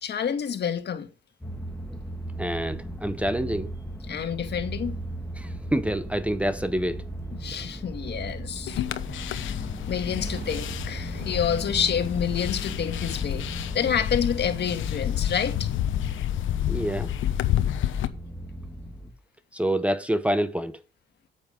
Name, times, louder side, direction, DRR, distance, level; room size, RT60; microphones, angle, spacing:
voice 1, 0.0-1.1 4.1-5.0 7.3-8.9 9.1-13.5 13.7-15.7, left 8 dB, 60° left, 1.9 m, -28 dB
sound 1, 1.4-19.1, equal, 10° left, 2.4 m, -37 dB
voice 2, 2.4-3.7 5.4-7.0 16.7-17.1 19.5-20.8, right 1 dB, 5° right, 0.8 m, -27 dB
sound 2, 8.7-18.1, left 12 dB, 80° left, 1.0 m, -30 dB
Explosion, 10.2-14.1 14.6-14.7, right 5 dB, 60° right, 2.5 m, -45 dB
8.9 x 8.2 x 5.0 m
cardioid pair, 90°, 20 cm